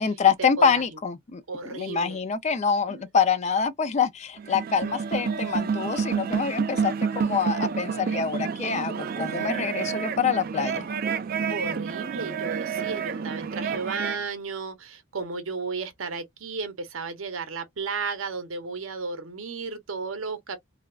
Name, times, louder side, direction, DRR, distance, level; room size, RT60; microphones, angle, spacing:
voice 1, 0.0-10.9, left 6 dB, 35° left, 0.4 m, -26 dB
voice 2, 1.5-2.2 2.9-3.0 11.5-20.6, right 4 dB, 75° right, 0.8 m, -33 dB
sound 1, 4.4-14.2, right 6 dB, 45° right, 0.4 m, -29 dB
3.3 x 2.3 x 2.3 m
head